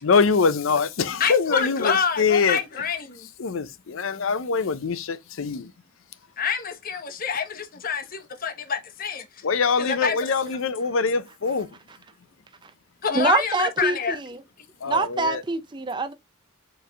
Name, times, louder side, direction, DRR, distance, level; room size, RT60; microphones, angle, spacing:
voice 1, 0.0-2.6 3.4-5.7 9.4-11.7 14.8-15.4, left 5 dB, 70° left, 0.6 m, -23 dB
voice 2, 1.2-3.3 6.4-9.5 9.8-10.3 13.0-14.2, left 6 dB, 45° left, 0.9 m, -27 dB
voice 3, 13.1-14.4 14.9-16.1, right 3 dB, 20° right, 0.4 m, -25 dB
4.7 x 3.2 x 3.4 m
head